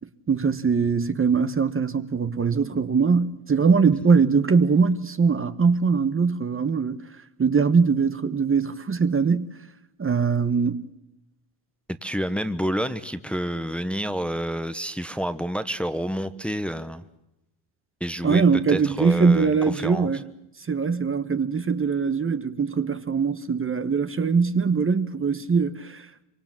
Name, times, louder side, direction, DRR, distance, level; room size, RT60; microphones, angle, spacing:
voice 1, 0.3-7.0 7.4-9.6 10.0-10.9 18.2-20.2 20.6-26.2, right 5 dB, 25° right, 1.1 m, -22 dB
voice 2, 11.9-17.0 18.0-20.1, equal, ahead, 1.1 m, -29 dB
25.0 x 24.5 x 7.4 m
cardioid pair, 105°, 48 cm